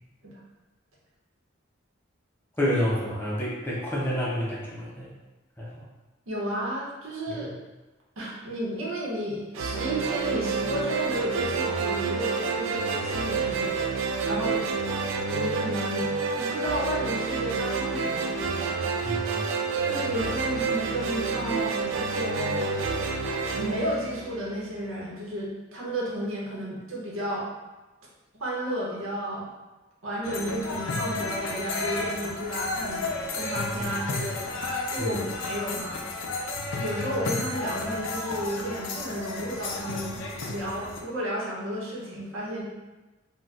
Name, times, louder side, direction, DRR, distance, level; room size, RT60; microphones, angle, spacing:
voice 1, 2.6-5.1 5.6-5.8 7.3-7.5 19.0-19.5 33.8-33.9 35.0-35.3, equal, 10° left, -6 dB, 0.5 m, -29 dB
voice 2, 6.3-7.5 8.2-14.7 15.2-18.8 19.8-22.7 23.5-27.5 28.4-29.5 30.0-33.0 33.3-36.0 36.7-40.2 40.5-42.6, equal, 90° right, -5 dB, 0.9 m, -32 dB
sound 1, 9.5-24.8, right 4 dB, 75° right, 0.3 m, -29 dB
sound 2, 30.2-41.0, left 3 dB, 70° left, 0.4 m, -32 dB
4.0 x 2.2 x 2.4 m, 1.1 s
head